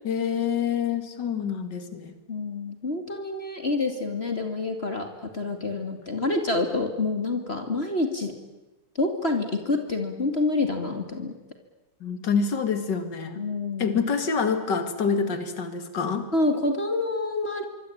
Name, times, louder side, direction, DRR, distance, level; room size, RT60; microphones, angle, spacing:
voice 1, 0.0-2.1 12.0-13.4 13.8-16.3, left 6 dB, 55° left, 9 dB, 2.9 m, -26 dB
voice 2, 2.3-5.1 5.3-8.3 9.0-11.3 13.4-14.0 16.3-17.7, left 2 dB, 30° left, 5 dB, 2.7 m, -27 dB
25.5 x 24.0 x 8.9 m, 1.0 s
omnidirectional pair, 2.3 m